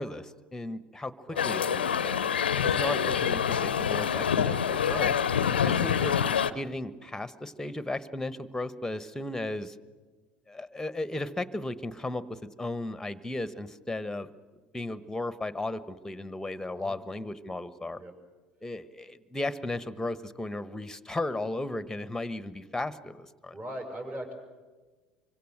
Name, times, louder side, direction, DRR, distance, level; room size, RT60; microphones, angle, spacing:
voice 1, 0.0-2.3 2.6-5.1 5.6-6.2 6.5-9.8 10.5-14.3 14.7-18.0 18.6-23.5, left 2 dB, 10° left, 15 dB, 1.2 m, -35 dB
voice 2, 1.2-1.8 16.7-16.9 17.9-18.1 23.5-24.3, right 1 dB, 30° right, 3 dB, 6.4 m, -40 dB
sound 1, 1.4-6.5, left 8 dB, 85° left, 0.6 m, -26 dB
25.0 x 24.5 x 6.6 m, 1.4 s
figure-of-eight pair, 65°, 5 cm